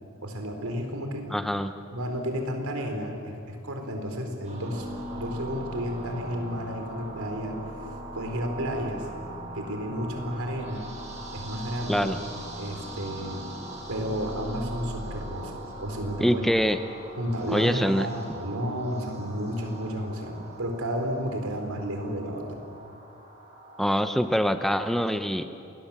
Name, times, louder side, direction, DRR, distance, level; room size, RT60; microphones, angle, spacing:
voice 1, 0.2-1.3 1.9-4.9 5.1-7.5 8.1-9.1 9.5-10.9 11.3-12.1 12.6-13.4 13.9-15.5 15.8-16.4 17.2-22.6, equal, 85° right, 4 dB, 4.2 m, -32 dB
voice 2, 1.3-1.7 11.9-12.2 16.2-16.8 17.5-18.1 23.8-25.5, equal, ahead, 9 dB, 0.7 m, -24 dB
sound 1, 4.4-24.2, right 1 dB, 30° right, 7.8 m, -41 dB
28.0 x 20.5 x 7.5 m, 2.6 s
head